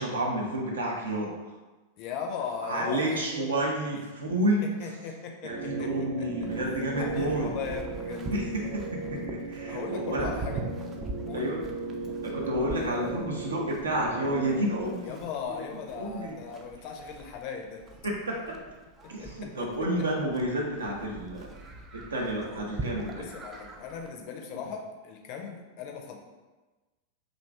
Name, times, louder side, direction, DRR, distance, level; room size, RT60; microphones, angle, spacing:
voice 1, 0.0-1.3 2.6-4.7 5.4-7.5 8.3-10.3 11.3-11.6 12.2-15.2 15.5-15.6 15.9-16.3 18.0-18.4 19.1-21.5 21.9-23.3, right 1 dB, 70° right, -1 dB, 0.5 m, -30 dB
voice 2, 2.0-3.5 4.6-5.9 6.7-8.3 9.7-10.6 11.2-11.5 15.0-17.8 19.0-19.7 20.0-20.1 23.2-26.2, left 6 dB, 45° left, 2 dB, 0.4 m, -38 dB
sound 1, 5.5-14.9, right 2 dB, 45° right, 0.8 m, -36 dB
Livestock farm animals working animals, 6.4-24.1, right 3 dB, 20° right, 0.3 m, -43 dB
2.5 x 2.3 x 3.2 m, 1.2 s
figure-of-eight pair, 90°, 0 cm